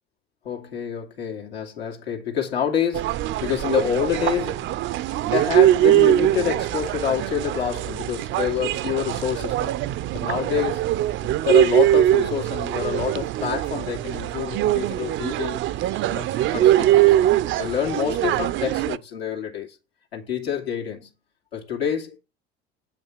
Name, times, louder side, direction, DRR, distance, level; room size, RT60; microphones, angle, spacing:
voice 1, 0.4-4.8 5.2-9.8 10.1-10.9 11.2-15.6 16.1-19.8 20.1-21.1 21.5-22.2, left 9 dB, 80° left, 2.7 m, -27 dB
sound 1, 2.9-19.0, right 13 dB, 40° right, 0.6 m, -22 dB
8.9 x 5.8 x 6.1 m
figure-of-eight pair, 70°, 30 cm